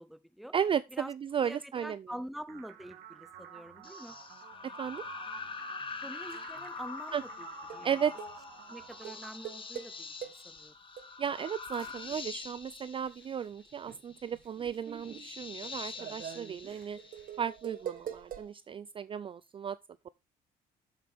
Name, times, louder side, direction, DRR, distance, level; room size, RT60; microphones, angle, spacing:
voice 1, 0.0-0.5 0.9-1.1 1.4-4.2 6.0-7.5 7.7-8.0 8.7-10.7, equal, ahead, 0.8 m, -46 dB
voice 2, 0.5-2.0 4.8-5.0 7.1-7.2 7.8-8.1 11.2-17.0 17.4-19.8, right 8 dB, 30° right, 0.4 m, -34 dB
sound 1, 2.5-10.5, right 10 dB, 85° right, 1.6 m, -51 dB
sound 2, 3.8-17.7, left 5 dB, 30° left, 1.3 m, -45 dB
sound 3, 6.3-6.6 7.1-7.2 7.7-7.9 8.2-8.4 9.0-10.6 11.0-11.1 11.6-13.4 13.7-18.5, right 9 dB, 55° right, 1.2 m, -45 dB
7.6 x 7.0 x 3.5 m
cardioid pair, 110°, 17 cm